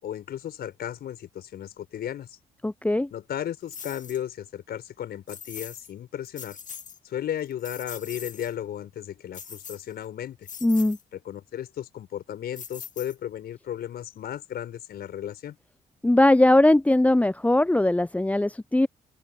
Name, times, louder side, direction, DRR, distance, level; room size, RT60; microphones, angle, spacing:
voice 1, 0.0-2.4 3.1-6.6 7.0-10.5 11.1-15.6, left 10 dB, 60° left, 5.0 m, -35 dB
voice 2, 2.6-3.1 10.6-11.0 16.0-18.9, left 1 dB, 10° left, 0.5 m, -20 dB
sound 1, 3.7-4.2 5.3-5.9 6.2-7.0 7.4-8.5 9.3-10.0 10.4-11.0 12.5-13.4, left 7 dB, 45° left, 1.9 m, -41 dB
open air
hypercardioid pair, 45°, 18 cm